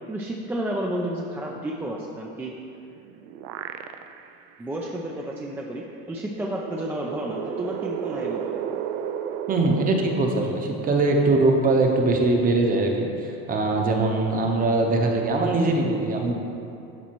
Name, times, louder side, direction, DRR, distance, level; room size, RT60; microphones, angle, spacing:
voice 1, 0.1-2.5 4.6-8.6, right 1 dB, 5° right, -2 dB, 0.3 m, -31 dB
sound 1, 2.8-4.4 4.9-5.0 6.2-11.0, right 9 dB, 80° right, 0.5 m, -33 dB
voice 2, 9.5-13.1 13.5-16.3, right 2 dB, 30° right, 2 dB, 0.8 m, -21 dB
12.0 x 4.0 x 3.0 m, 2.7 s
cardioid pair, 135°, 30 cm